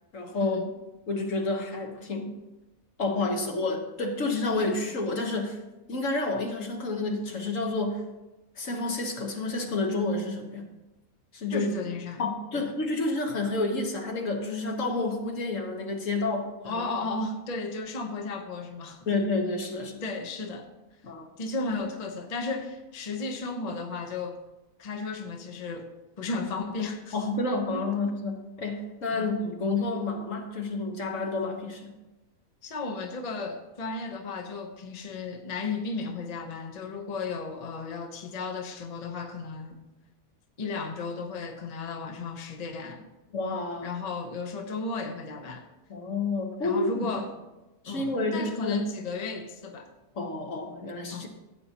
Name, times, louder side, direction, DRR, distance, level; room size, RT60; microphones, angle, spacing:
voice 1, 0.1-0.6 1.1-2.4 3.0-5.6 5.9-8.0 8.6-10.7 11.3-11.7 12.2-16.8 19.1-20.0 21.0-21.3 27.1-31.9 43.3-43.9 45.9-47.0 47.8-48.8 50.1-51.3, left 3 dB, 60° left, 1.6 m, -29 dB
voice 2, 11.5-12.2 12.5-12.7 16.6-19.1 20.0-20.7 21.4-24.4 24.8-27.2 27.7-27.9 29.1-29.3 32.6-39.7 40.6-43.1 43.8-45.7 46.6-47.3 47.9-49.9 51.1-51.3, left 3 dB, 35° left, 0.9 m, -34 dB
15.5 x 8.5 x 2.9 m
omnidirectional pair, 1.5 m